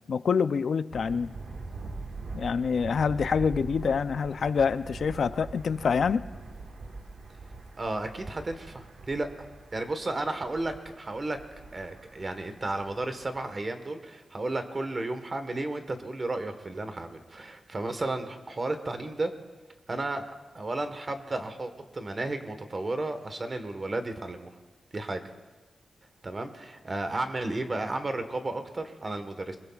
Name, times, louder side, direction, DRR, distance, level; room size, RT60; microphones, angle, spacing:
voice 1, 0.1-1.3 2.3-6.3, left 6 dB, 65° left, 13 dB, 0.4 m, -26 dB
Thunder, 0.9-13.4, right 3 dB, 65° right, 1.3 m, -43 dB
voice 2, 7.8-9.3 9.7-11.4 11.7-19.3 19.9-20.3 20.5-24.5 24.9-25.2 26.2-29.6, right 2 dB, 35° right, 8 dB, 1.3 m, -33 dB
25.5 x 22.0 x 2.4 m, 1.3 s
wide cardioid pair, 120°, 0 cm